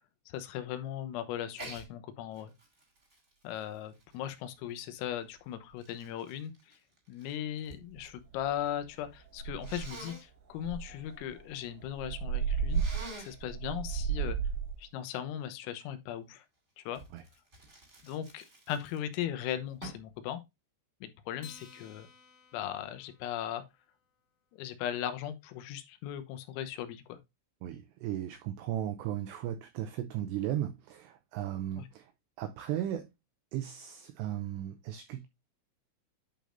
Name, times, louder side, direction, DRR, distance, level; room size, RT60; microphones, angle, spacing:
voice 1, 0.3-2.5 3.4-6.8 7.1-12.8 13.2-14.4 14.8-16.5 16.8-17.0 18.0-20.4 21.0-22.1 22.5-23.6 24.5-27.2 31.8-31.9, left 11 dB, 85° left, 3.7 m, -38 dB
Sneeze, 1.6-1.9 2.3-4.7 5.4-7.8 8.1-8.7 9.6-10.2 12.7-13.4 16.9-19.2 19.8-20.1, right 1 dB, 20° right, 1.9 m, -48 dB
sound 1, 7.9-8.0 8.4-8.6 9.0-9.1 9.4-10.0 10.6-14.8, right 6 dB, 65° right, 2.3 m, -33 dB
Acoustic guitar, 21.4-24.1, left 7 dB, 60° left, 2.5 m, -55 dB
voice 2, 27.6-32.1 32.4-33.1 33.5-35.3, right 11 dB, 90° right, 2.4 m, -36 dB
10.5 x 5.1 x 2.5 m
omnidirectional pair, 5.8 m